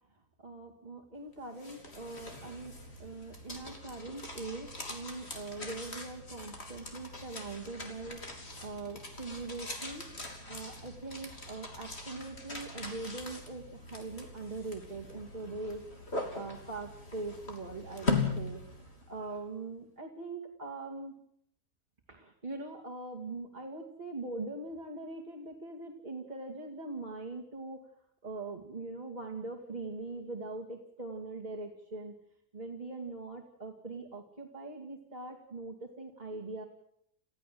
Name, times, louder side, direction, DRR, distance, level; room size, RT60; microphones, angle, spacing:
voice 1, 0.4-2.7 3.0-8.2 8.6-10.0 10.5-15.8 16.3-18.6 19.1-21.1 22.1-27.8 28.2-32.1 32.5-36.6, right 3 dB, 25° right, -1 dB, 2.5 m, -42 dB
sound 1, 1.3-19.3, left 3 dB, 40° left, 3.6 m, -40 dB
29.5 x 15.5 x 7.8 m, 0.73 s
omnidirectional pair, 1.7 m